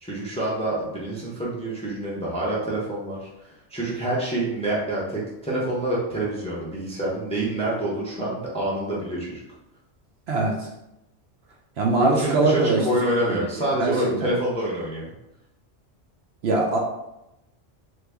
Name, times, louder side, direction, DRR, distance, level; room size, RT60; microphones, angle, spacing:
voice 1, 0.0-3.3 3.7-9.4 12.0-15.1, right 1 dB, 5° left, -6 dB, 0.6 m, -27 dB
voice 2, 10.3-10.7 11.8-12.9 13.3-14.3 16.4-16.8, right 3 dB, 65° right, -1 dB, 0.8 m, -22 dB
3.0 x 2.6 x 3.4 m, 0.88 s
omnidirectional pair, 1.3 m